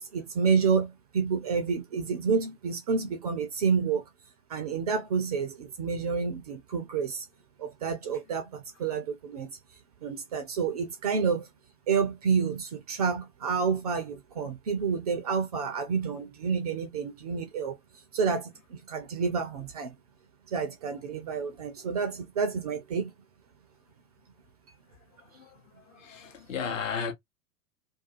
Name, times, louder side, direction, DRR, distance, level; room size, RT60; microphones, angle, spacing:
voice 1, 0.0-4.0 4.5-7.3 7.6-9.6 10.0-11.5 11.9-17.8 18.1-19.9 20.5-23.1, right 5 dB, 30° right, 0.4 m, -29 dB
voice 2, 25.9-27.1, left 6 dB, 60° left, 0.8 m, -34 dB
2.4 x 2.2 x 2.5 m
figure-of-eight pair, 95°, 44 cm